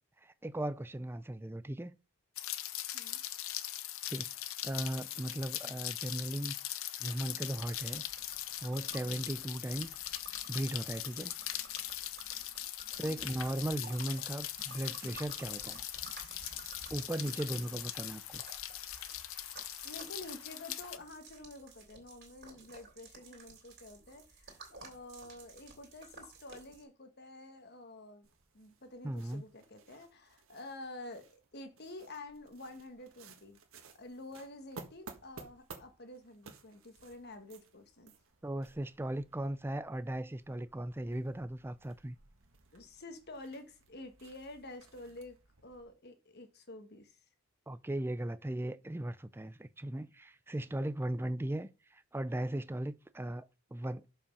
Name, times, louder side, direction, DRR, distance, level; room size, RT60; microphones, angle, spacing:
voice 1, 0.2-2.0 4.1-4.3 4.6-6.5 7.0-8.1 8.6-10.0 10.5-11.4 13.0-15.8 16.9-18.4 29.0-29.4 38.4-42.1 47.7-54.1, right 1 dB, 10° right, 0.4 m, -37 dB
Rain, 2.4-21.0, left 13 dB, 65° left, 0.7 m, -41 dB
sound 1, 7.5-26.8, right 4 dB, 50° right, 3.0 m, -54 dB
voice 2, 13.0-13.4 19.8-28.3 28.5-33.6 33.9-38.1 42.7-45.4 45.6-47.2, left 2 dB, 45° left, 1.4 m, -49 dB
sound 2, 28.2-45.9, right 3 dB, 65° right, 1.6 m, -57 dB
7.0 x 5.7 x 5.3 m
head